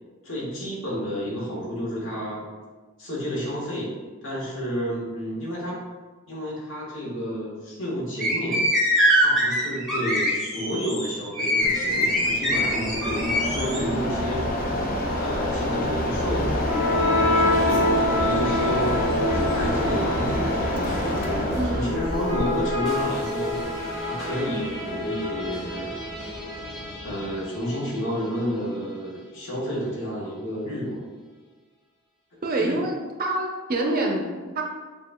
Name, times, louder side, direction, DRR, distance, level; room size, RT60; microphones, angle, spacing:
voice 1, 0.2-2.5 3.0-3.9 4.2-5.8 6.3-8.7 9.2-14.5 15.1-16.6 17.0-19.0 19.3-23.6 24.0-26.0 27.0-31.0 32.5-32.7, equal, 65° left, -5 dB, 1.3 m, -30 dB
sound 1, 8.2-13.8, equal, ahead, 0.8 m, -23 dB
Mechanisms, 11.6-24.0, left 1 dB, 40° left, 0.4 m, -28 dB
sound 2, 16.2-28.1, left 1 dB, 25° left, 1.4 m, -27 dB
voice 2, 21.6-21.9 32.4-34.6, right 2 dB, 40° right, 1 dB, 0.5 m, -26 dB
6.9 x 2.3 x 2.2 m, 1.4 s
head